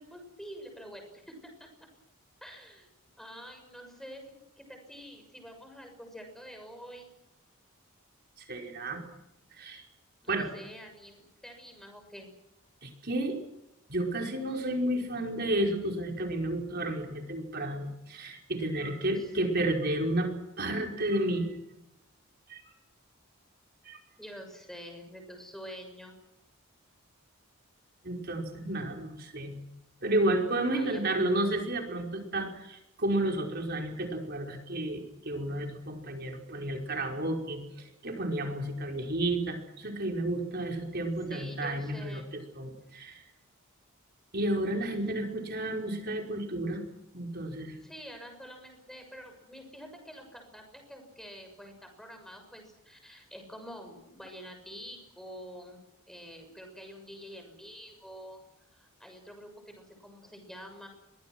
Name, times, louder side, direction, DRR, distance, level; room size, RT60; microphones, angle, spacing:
voice 1, 0.0-1.7 2.4-2.9 3.2-7.1 10.2-12.3 19.1-19.7 24.2-26.2 30.7-31.2 41.3-42.3 47.8-58.4 58.7-60.9, equal, ahead, 4 dB, 6.6 m, -47 dB
voice 2, 8.4-9.0 9.5-9.8 10.3-10.5 12.8-13.4 13.9-21.5 22.5-22.6 23.9-24.0 28.0-29.6 30.0-43.2 44.3-46.8 47.1-47.8, right 1 dB, 45° right, 2 dB, 5.2 m, -31 dB
28.5 x 23.0 x 6.3 m, 0.87 s
head